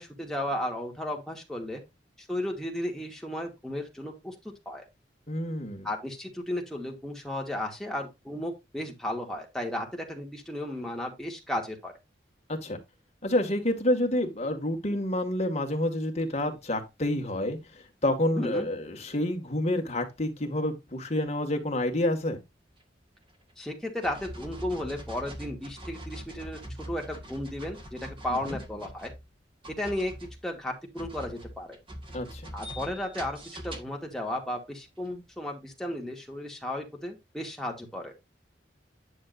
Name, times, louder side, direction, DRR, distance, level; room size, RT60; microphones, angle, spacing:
voice 1, 0.0-1.8 2.2-4.3 4.7-4.8 5.8-11.9 18.4-18.7 23.6-29.1 29.8-30.1 30.4-31.8 32.5-38.1, left 1 dB, 5° left, 2.4 m, -34 dB
voice 2, 5.3-5.9 12.5-12.8 13.2-17.6 18.0-22.4 28.3-28.6 32.1-32.4, left 1 dB, 40° left, 2.1 m, -28 dB
sound 1, 22.8-22.9 23.3-23.5 24.0-29.3 29.6-34.1 35.0-35.1, equal, 30° right, 1.8 m, -43 dB
10.0 x 6.6 x 2.6 m
head